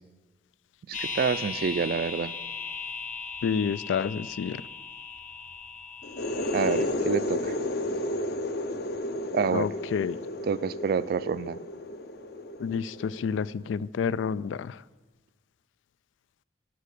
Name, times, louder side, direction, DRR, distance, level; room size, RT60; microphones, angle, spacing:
sound 1, 0.9-6.8, left 4 dB, 40° left, 1.1 m, -37 dB
voice 1, 0.9-2.3 6.5-7.6 9.3-9.7 10.4-11.6, right 6 dB, 55° right, 18 dB, 0.3 m, -28 dB
voice 2, 3.4-4.6 9.5-10.2 12.6-14.8, left 6 dB, 90° left, 20 dB, 0.3 m, -29 dB
sound 2, 6.0-13.6, left 1 dB, 55° left, 0.7 m, -32 dB
11.0 x 6.4 x 6.8 m, 1.2 s
head